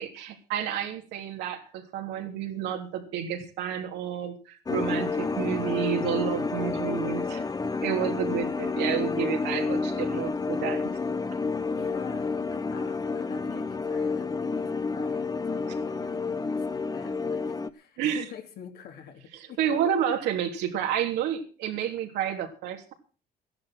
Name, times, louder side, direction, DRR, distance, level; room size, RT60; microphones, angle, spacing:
voice 1, 0.0-7.4 7.8-10.9 18.0-18.2 19.3-22.9, right 9 dB, 85° right, 3 dB, 3.3 m, -30 dB
sound 1, 4.7-17.7, left 4 dB, 20° left, 1.0 m, -30 dB
voice 2, 11.7-19.6, left 8 dB, 70° left, 4 dB, 3.2 m, -45 dB
14.5 x 10.5 x 6.2 m, 0.38 s
cardioid pair, 110°, 17 cm